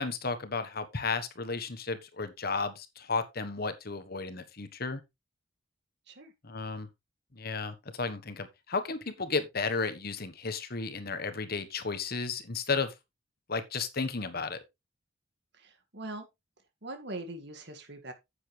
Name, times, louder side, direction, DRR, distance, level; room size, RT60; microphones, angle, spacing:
voice 1, 0.0-5.0 6.4-6.9 7.3-12.9 13.5-14.6, left 4 dB, 50° left, 1.3 m, -33 dB
voice 2, 15.5-16.3 16.8-18.1, right 2 dB, 55° right, 2.2 m, -42 dB
9.8 x 8.4 x 3.4 m
head